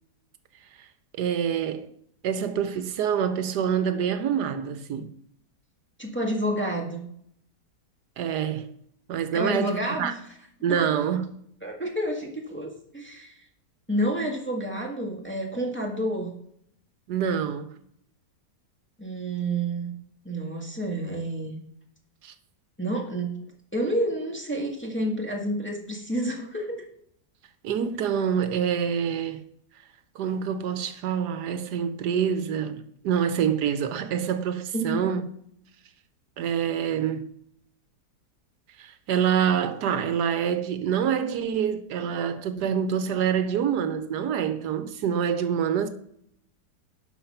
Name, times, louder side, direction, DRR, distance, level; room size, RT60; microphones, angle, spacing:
voice 1, 1.1-1.9 2.2-5.1 8.2-8.8 9.1-10.1 10.6-11.4 17.1-17.7 22.2-22.3 27.6-29.4 30.1-35.3 36.4-37.3 38.8-45.9, right 8 dB, 80° right, 1.3 m, -26 dB
voice 2, 6.0-7.1 9.3-10.1 10.7-11.0 11.6-13.3 13.9-16.3 19.0-19.9 20.2-21.6 22.8-23.3 23.7-26.9 34.7-35.0, right 1 dB, 5° left, 1.6 m, -29 dB
11.5 x 5.1 x 5.5 m
omnidirectional pair, 1.8 m